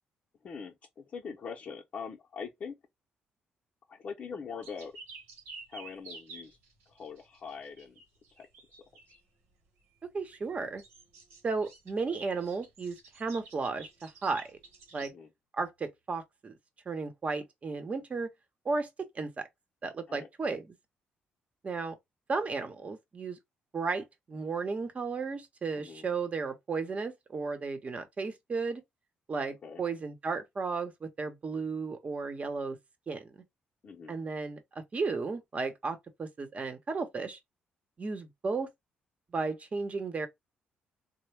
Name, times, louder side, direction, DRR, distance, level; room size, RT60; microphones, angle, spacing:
voice 1, 0.4-2.8 3.9-5.0 5.7-6.6 6.9-8.0 8.4-9.2 15.0-15.3 20.1-20.3 25.8-26.0 29.6-29.8 33.8-34.1, left 6 dB, 50° left, 0.7 m, -43 dB
sound 1, 4.6-9.2 10.2-15.1, right 3 dB, 90° right, 1.1 m, -51 dB
voice 2, 10.1-10.8 11.4-14.6 14.9-15.1 15.5-16.5 16.9-18.3 18.6-19.4 19.8-20.7 21.6-22.0 22.3-23.4 23.7-28.8 29.3-32.8 33.1-33.4 34.1-37.4 38.0-38.7 39.3-40.3, right 4 dB, 40° right, 0.9 m, -34 dB
3.3 x 2.1 x 3.2 m
cardioid pair, 75°, 4 cm